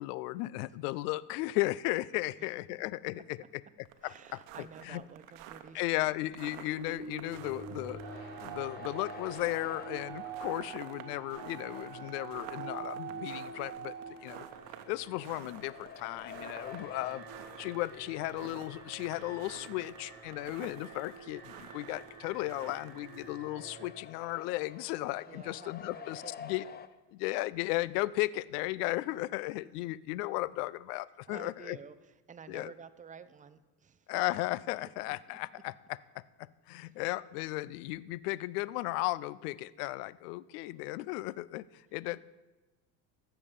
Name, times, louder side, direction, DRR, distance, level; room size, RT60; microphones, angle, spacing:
voice 1, 0.0-3.4 4.0-5.0 5.7-13.9 14.2-14.4 14.9-17.2 17.6-26.6 27.1-31.8 32.5-32.7 34.1-36.0 36.4-42.2, left 18 dB, 80° left, 20 dB, 0.6 m, -35 dB
sound 1, 3.8-23.4, right 12 dB, 70° right, 1.1 m, -51 dB
voice 2, 4.0-6.1 25.3-26.5 31.3-34.1 35.3-35.6 36.7-37.0 42.1-42.2, right 6 dB, 15° right, 11 dB, 0.6 m, -51 dB
Alarm, 6.0-23.9, right 6 dB, 50° right, 1.9 m, -46 dB
sound 2, 8.0-26.9, left 7 dB, 20° left, 0.6 m, -51 dB
15.0 x 7.2 x 5.4 m, 1.1 s
supercardioid pair, 90°, 46 cm